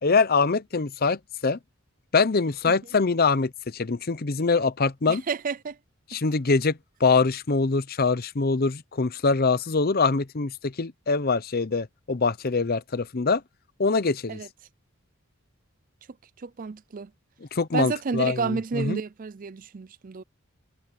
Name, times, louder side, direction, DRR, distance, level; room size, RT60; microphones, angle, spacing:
voice 1, 0.0-1.6 2.1-5.2 6.1-13.4 13.8-14.4 17.5-19.0, left 4 dB, 45° left, 0.7 m, -24 dB
voice 2, 5.1-5.8 14.3-14.5 16.4-17.1 17.7-20.2, right 4 dB, 40° right, 0.4 m, -30 dB
head